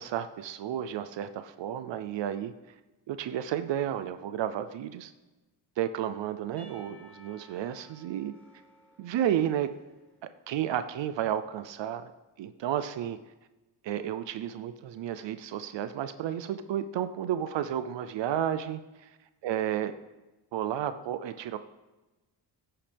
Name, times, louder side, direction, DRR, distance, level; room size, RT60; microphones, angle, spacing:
voice 1, 0.0-2.5 3.1-5.1 5.8-8.3 9.0-9.7 10.5-12.1 12.4-13.2 13.8-19.2 19.4-19.9 20.5-21.6, right 10 dB, 70° right, 11 dB, 0.6 m, -32 dB
Percussion / Church bell, 6.6-10.7, left 1 dB, 5° left, 2.3 m, -58 dB
15.0 x 8.6 x 3.5 m, 1.1 s
cardioid pair, 105°, 45 cm